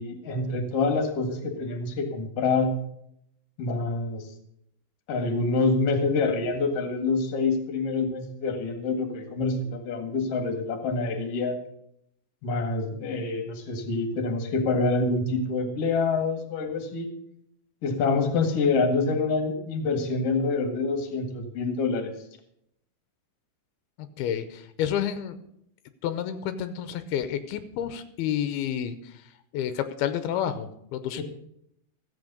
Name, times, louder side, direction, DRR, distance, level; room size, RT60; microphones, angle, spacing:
voice 1, 0.0-2.7 3.6-4.3 5.1-11.6 12.4-17.1 17.8-22.1 31.2-31.3, left 3 dB, 45° left, 7 dB, 2.3 m, -26 dB
voice 2, 24.2-25.4 26.0-29.0 29.5-31.2, left 9 dB, 85° left, 11 dB, 2.7 m, -29 dB
14.5 x 8.1 x 6.7 m, 0.73 s
omnidirectional pair, 4.5 m